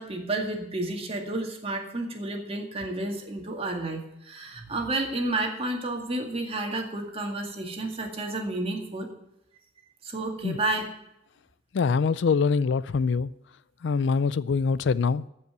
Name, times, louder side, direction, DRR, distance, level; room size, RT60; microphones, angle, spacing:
voice 1, 0.0-9.1 10.0-10.9, right 2 dB, 30° right, 2.1 m, -31 dB
voice 2, 11.7-13.3 13.8-15.3, left 5 dB, 70° left, 0.4 m, -24 dB
14.5 x 5.7 x 7.8 m
head